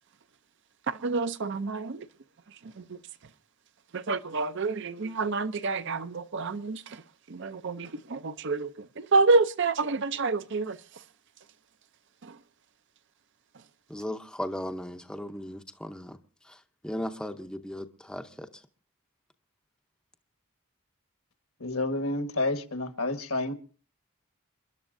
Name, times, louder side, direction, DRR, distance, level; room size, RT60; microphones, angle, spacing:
voice 1, 1.0-1.9 4.1-6.8 7.4-8.7 9.1-10.7, right 3 dB, 50° right, 0.5 m, -27 dB
voice 2, 13.9-16.2 16.8-18.5, equal, 5° left, 0.6 m, -36 dB
voice 3, 21.6-23.5, left 2 dB, 70° left, 1.5 m, -29 dB
29.0 x 11.5 x 2.6 m
head